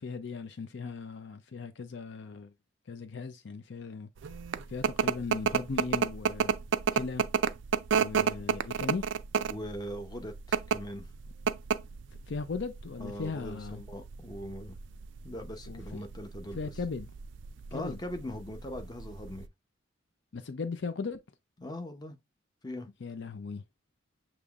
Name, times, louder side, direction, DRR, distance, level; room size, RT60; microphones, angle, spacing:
voice 1, 0.0-2.5 2.9-4.1 4.7-6.6 6.9-7.2 8.0-9.1 12.3-13.8 15.7-16.0 16.5-17.1 17.7-18.0 20.3-21.2 23.0-23.6, left 4 dB, 65° left, 0.5 m, -37 dB
sound 1, 4.2-19.5, right 6 dB, 70° right, 0.3 m, -31 dB
voice 2, 9.5-11.1 13.0-14.8 15.2-16.7 17.7-19.5 21.6-22.2 22.6-22.9, left 1 dB, 20° left, 0.7 m, -40 dB
6.8 x 3.0 x 2.4 m
head